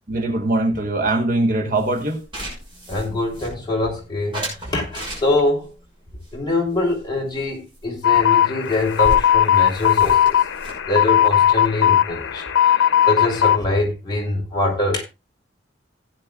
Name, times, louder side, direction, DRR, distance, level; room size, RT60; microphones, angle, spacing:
voice 1, 0.1-2.2, right 2 dB, 45° right, 1.4 m, -21 dB
sound 1, 1.8-3.9 4.3-5.6 6.2-7.5 7.7-7.9 8.2-8.3 8.5-12.3, equal, 25° right, 5.9 m, -35 dB
voice 2, 2.9-5.7 6.3-10.4 10.9-12.7 13.1-15.0, left 2 dB, 20° left, 3.3 m, -24 dB
sound 2, 8.0-13.6, left 10 dB, 90° left, 0.7 m, -17 dB
16.5 x 9.5 x 2.4 m
head